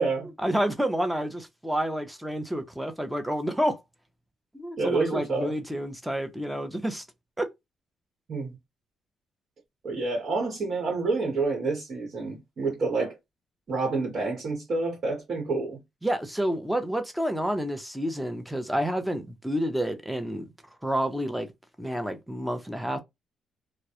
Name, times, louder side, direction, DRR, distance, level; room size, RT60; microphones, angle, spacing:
voice 1, 0.4-3.8 4.5-7.0 7.4-7.5 16.0-20.4 20.8-21.5 21.8-23.0, equal, 5° right, 0.6 m, -29 dB
voice 2, 4.8-5.5 8.3-8.5 9.8-13.1 13.7-15.8, right 3 dB, 55° right, 1.0 m, -28 dB
2.2 x 2.0 x 2.7 m
cardioid pair, 90°, 0 cm